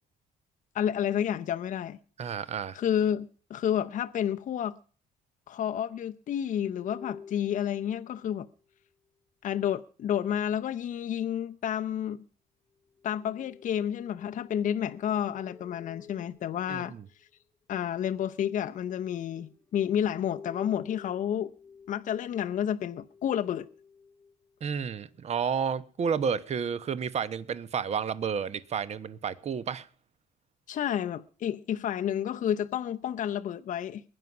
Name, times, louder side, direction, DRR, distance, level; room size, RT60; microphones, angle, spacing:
voice 1, 0.7-2.0 2.7-4.8 5.5-8.5 9.4-12.2 13.0-16.9 17.7-21.5 21.9-23.7 30.7-34.0, left 9 dB, 50° left, 0.7 m, -30 dB
voice 2, 2.2-2.8 16.7-17.0 24.6-29.9, right 7 dB, 40° right, 1.1 m, -31 dB
sound 1, 6.7-8.6 13.0-17.4 18.8-25.0, left 5 dB, 15° left, 1.2 m, -51 dB
21.5 x 9.7 x 6.1 m
cardioid pair, 110°, 17 cm